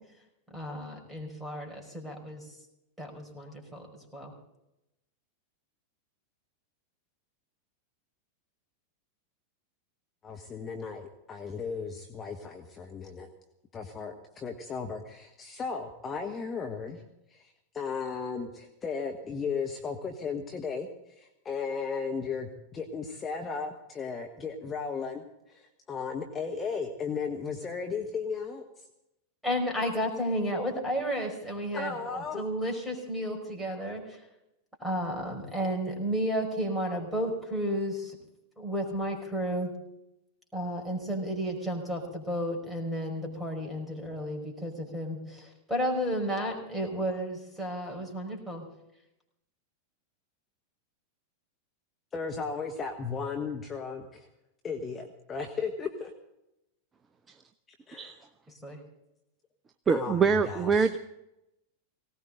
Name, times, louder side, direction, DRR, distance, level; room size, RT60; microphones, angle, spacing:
voice 1, 0.5-2.4 3.0-3.9 4.1-4.3 29.4-34.2 34.8-38.2 38.6-39.7 40.5-48.7 58.6-58.8, equal, 5° right, 1 dB, 5.2 m, -32 dB
voice 2, 10.2-13.3 13.7-17.0 17.3-20.9 21.1-28.6 31.7-32.4 52.1-54.3 54.6-56.1 57.9-58.2 59.9-60.9, left 5 dB, 20° left, 3 dB, 1.4 m, -35 dB
voice 3, 59.9-61.0, right 5 dB, 20° right, 9 dB, 0.7 m, -24 dB
19.5 x 18.0 x 3.9 m, 0.88 s
figure-of-eight pair, 90°, 0 cm